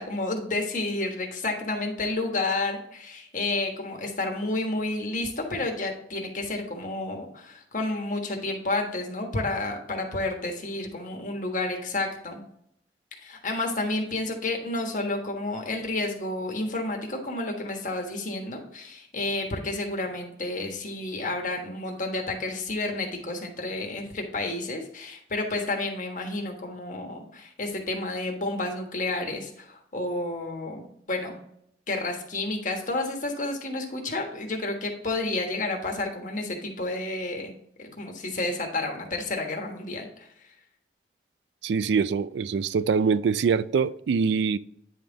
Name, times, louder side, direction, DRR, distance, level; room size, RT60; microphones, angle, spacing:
voice 1, 0.0-12.4 13.2-31.4 31.9-37.5 37.8-40.3, left 2 dB, 45° left, 1.4 m, -30 dB
voice 2, 41.6-44.6, right 5 dB, 80° right, 0.3 m, -24 dB
9.5 x 3.6 x 3.9 m
head